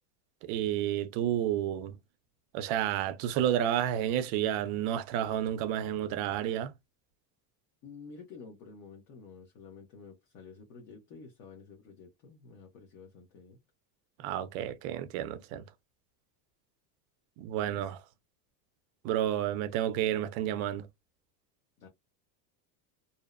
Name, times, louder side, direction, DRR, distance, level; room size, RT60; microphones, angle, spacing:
voice 1, 0.4-2.0 2.5-6.7 14.2-15.6 17.4-18.0 19.0-20.9, right 11 dB, 55° right, 0.5 m, -30 dB
voice 2, 7.8-13.6 17.6-17.9 21.8-21.9, left 5 dB, 45° left, 0.9 m, -50 dB
2.7 x 2.0 x 2.3 m
supercardioid pair, 150°, 47 cm